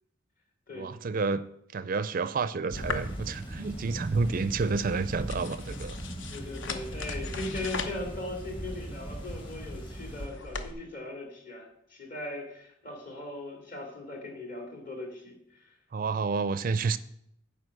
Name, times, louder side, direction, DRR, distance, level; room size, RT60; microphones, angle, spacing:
voice 1, 0.7-1.4 1.7-6.0 15.9-17.0, right 4 dB, 45° right, 14 dB, 0.4 m, -29 dB
sound 1, 2.7-10.3, equal, 25° left, 1.6 m, -39 dB
sound 2, 2.8-10.7, left 4 dB, 65° left, 0.8 m, -41 dB
voice 2, 6.3-15.7, left 2 dB, 45° left, 1 dB, 2.6 m, -39 dB
9.7 x 5.0 x 7.7 m, 0.74 s
head